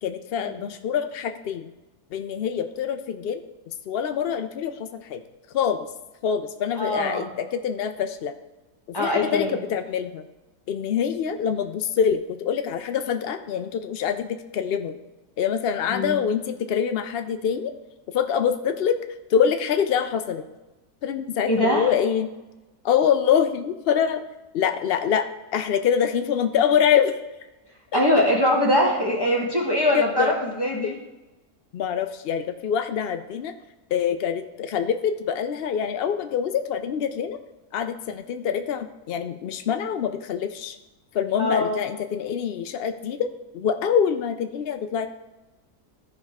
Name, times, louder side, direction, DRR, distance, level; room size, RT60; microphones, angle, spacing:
voice 1, 0.0-1.7 2.1-3.4 3.9-5.2 5.5-5.9 6.2-8.3 9.0-10.2 10.7-15.0 15.4-17.7 18.1-19.0 19.3-20.4 21.0-22.3 22.8-24.2 24.5-27.1 27.9-28.0 29.9-30.3 30.8-30.9 31.7-33.5 33.9-37.4 37.7-40.8 41.1-45.1, left 8 dB, 90° left, 8 dB, 0.5 m, -25 dB
voice 2, 6.8-7.3 8.9-9.6 15.9-16.2 21.5-21.9 27.9-30.9 41.4-41.8, left 1 dB, 15° left, -1 dB, 1.4 m, -22 dB
14.0 x 5.2 x 3.6 m, 1.1 s
omnidirectional pair, 1.7 m